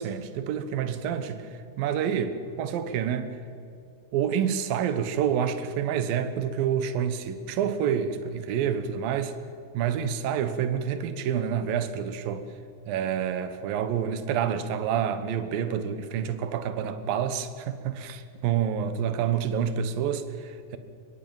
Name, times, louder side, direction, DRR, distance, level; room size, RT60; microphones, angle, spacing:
voice 1, 0.0-1.5 1.8-3.4 4.1-9.3 9.7-12.5 12.9-20.8, right 8 dB, 70° right, 2.9 m, -28 dB
26.5 x 23.0 x 7.3 m
omnidirectional pair, 4.5 m